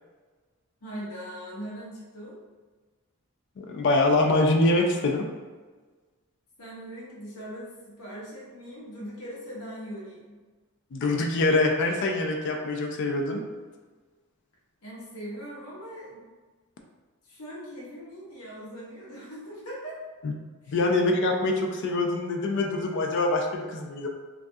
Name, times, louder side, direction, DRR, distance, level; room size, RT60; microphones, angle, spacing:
voice 1, 0.8-2.4 6.6-10.4 14.8-16.2 17.2-20.0 20.6-20.8, equal, 85° left, -5 dB, 0.7 m, -40 dB
voice 2, 3.6-5.2 10.9-13.4 20.7-24.1, left 2 dB, 55° left, 2 dB, 0.3 m, -24 dB
2.3 x 2.2 x 2.6 m, 1.4 s
head